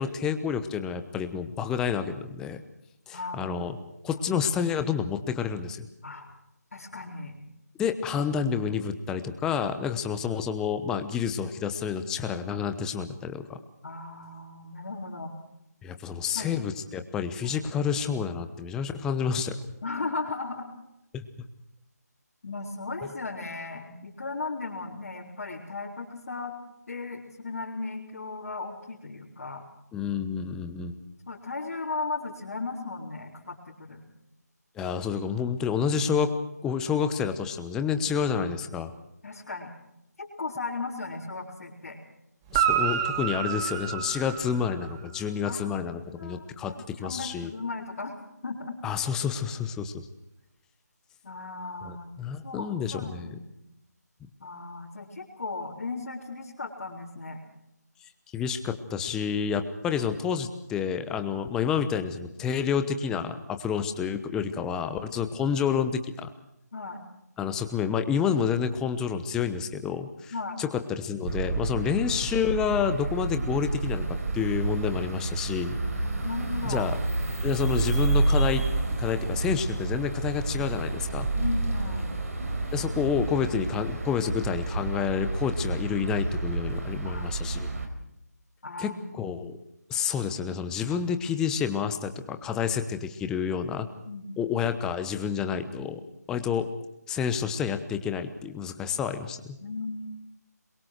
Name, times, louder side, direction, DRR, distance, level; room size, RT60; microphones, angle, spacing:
voice 1, 0.0-2.6 3.1-3.8 4.0-5.9 7.8-13.6 15.8-19.6 21.1-21.2 29.9-31.0 34.8-36.3 36.6-38.9 42.5-47.5 48.8-50.1 51.8-53.4 58.3-66.3 67.4-75.8 76.6-77.0 77.4-78.6 78.9-81.3 82.7-87.7 88.8-89.6 89.9-93.9 94.4-96.0 96.3-96.7 97.1-99.6, left 7 dB, 5° left, 9 dB, 1.0 m, -29 dB
voice 2, 3.1-3.6 4.1-4.2 6.0-6.3 6.7-7.4 13.8-15.4 16.3-16.7 17.4-17.6 19.8-20.7 22.4-26.5 26.9-29.6 31.3-34.0 39.2-39.7 40.2-42.0 45.4-45.9 46.2-48.2 48.4-48.8 51.2-53.6 54.4-57.4 66.7-67.0 70.3-70.6 76.2-76.9 81.3-82.2 87.0-87.9 88.6-89.4 90.9-91.0 94.0-94.4 95.9-96.1 99.6-100.0, left 3 dB, 50° left, -5 dB, 4.2 m, -36 dB
Guitar, 42.5-45.1 48.9-49.0, right 8 dB, 15° right, 1.5 m, -28 dB
sound 1, 71.3-87.9, right 2 dB, 55° right, 4.6 m, -29 dB
28.0 x 22.5 x 4.6 m, 0.82 s
figure-of-eight pair, 160°, 9 cm